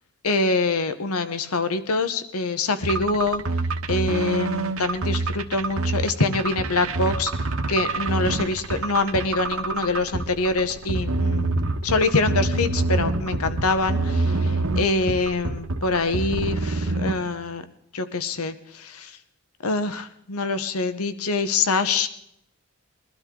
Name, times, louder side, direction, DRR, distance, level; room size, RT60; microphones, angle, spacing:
voice 1, 0.2-3.4 3.9-7.3 7.7-11.6 11.8-17.6 17.9-19.2 19.6-22.1, left 3 dB, 85° left, 11 dB, 1.0 m, -25 dB
sound 1, 2.8-17.1, right 2 dB, 75° right, 1.1 m, -26 dB
22.5 x 12.5 x 3.8 m, 0.73 s
head